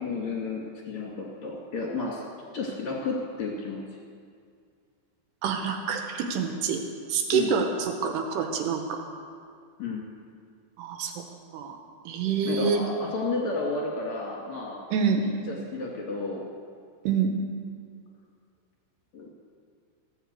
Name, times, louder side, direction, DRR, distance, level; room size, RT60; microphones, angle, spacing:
voice 1, 0.0-2.2 2.5-3.8 7.3-7.6 9.8-10.0 12.4-14.8 15.2-16.5 19.1-19.3, left 3 dB, 50° left, -3 dB, 2.6 m, -32 dB
voice 2, 5.4-6.8 7.1-9.0 10.8-11.1 11.5-11.8 12.1-12.8 14.9-15.2 17.1-17.3, right 6 dB, 70° right, 4 dB, 2.9 m, -26 dB
16.0 x 8.2 x 8.1 m, 2.2 s
omnidirectional pair, 5.5 m